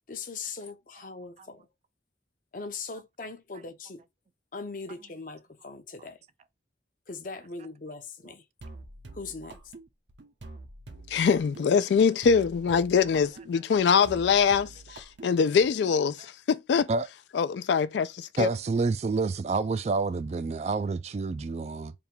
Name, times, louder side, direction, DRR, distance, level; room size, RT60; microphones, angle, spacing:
voice 1, 0.1-1.7 2.5-4.0 4.5-6.2 7.1-8.4 9.1-9.6, left 4 dB, 45° left, 0.7 m, -40 dB
sound 1, 8.6-15.8, right 2 dB, 75° right, 0.7 m, -47 dB
voice 2, 11.1-16.9 17.3-18.5, left 6 dB, 70° left, 0.3 m, -23 dB
voice 3, 18.4-21.9, right 4 dB, 35° right, 0.3 m, -28 dB
3.5 x 2.3 x 4.3 m
head